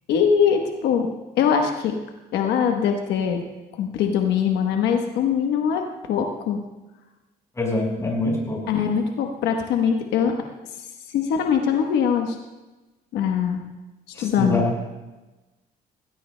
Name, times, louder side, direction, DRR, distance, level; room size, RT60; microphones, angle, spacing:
voice 1, 0.1-1.1 1.4-2.0 2.3-3.4 3.7-6.6 8.7-10.4 11.1-12.4 13.1-13.6 14.2-14.8, left 7 dB, 80° left, 3 dB, 1.1 m, -22 dB
voice 2, 7.5-8.6 14.1-14.7, left 2 dB, 15° left, -1 dB, 4.9 m, -24 dB
18.5 x 17.0 x 2.2 m, 1.1 s
cardioid pair, 110°, 17 cm